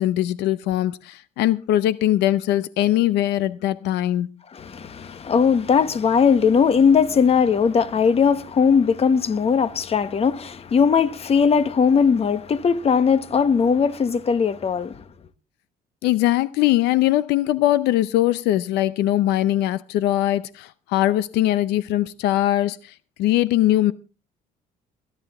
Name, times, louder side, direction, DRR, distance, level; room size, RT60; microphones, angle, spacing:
voice 1, 0.0-4.3 16.0-23.9, left 14 dB, 85° left, 0.6 m, -21 dB
voice 2, 4.5-15.0, left 6 dB, 35° left, 1.1 m, -19 dB
20.0 x 11.5 x 3.5 m
cardioid pair, 110°, 17 cm